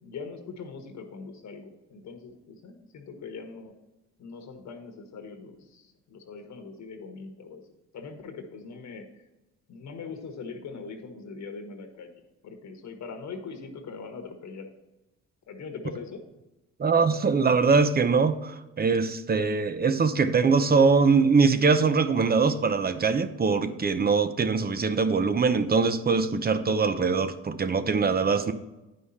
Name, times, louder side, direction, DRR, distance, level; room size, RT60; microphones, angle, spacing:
voice 1, 0.0-3.7 4.2-7.6 7.9-9.3 9.7-12.1 12.4-14.7 15.5-16.2, left 4 dB, 65° left, 5 dB, 1.4 m, -41 dB
voice 2, 16.8-28.5, right 4 dB, 30° right, 11 dB, 0.8 m, -22 dB
9.8 x 5.4 x 4.2 m, 1.0 s
cardioid pair, 90°, 30 cm